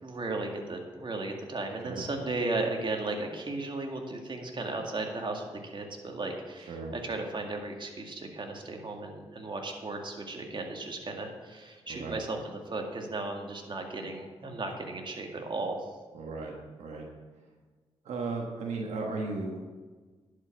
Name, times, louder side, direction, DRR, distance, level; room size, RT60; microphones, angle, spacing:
voice 1, 0.0-15.8, right 2 dB, 45° right, 2 dB, 2.1 m, -35 dB
voice 2, 11.9-12.2 16.1-16.5 16.8-17.1 18.0-19.6, right 3 dB, 80° right, 0 dB, 1.4 m, -35 dB
11.0 x 5.8 x 7.0 m, 1.4 s
supercardioid pair, 45°, 11 cm